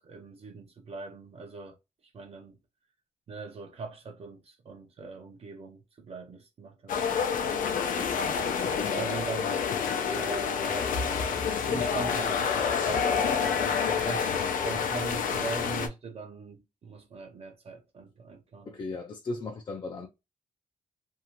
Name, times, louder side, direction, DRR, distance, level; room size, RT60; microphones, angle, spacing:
voice 1, 0.0-1.7 2.1-2.6 3.3-8.2 8.9-9.6 10.1-11.0 11.5-18.7, right 4 dB, 50° right, 0.6 m, -41 dB
sound 1, 6.9-15.9, left 6 dB, 90° left, 0.6 m, -28 dB
voice 2, 8.6-9.1 18.7-20.1, left 3 dB, 35° left, 0.4 m, -37 dB
2.7 x 2.4 x 2.8 m
wide cardioid pair, 150°, 13 cm